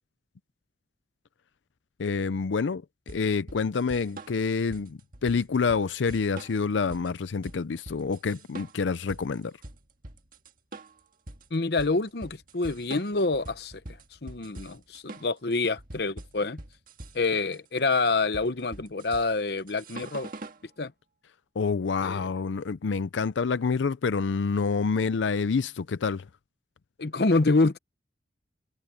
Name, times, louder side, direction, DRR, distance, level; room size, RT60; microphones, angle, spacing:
voice 1, 2.0-9.6 21.6-26.3, left 5 dB, 85° left, 0.5 m, -27 dB
sound 1, 3.1-20.6, right 2 dB, 50° right, 1.8 m, -44 dB
voice 2, 11.5-13.7 14.2-16.6 17.1-20.3 20.8-20.9 22.0-22.3 27.0-27.8, left 3 dB, 60° left, 0.9 m, -27 dB
head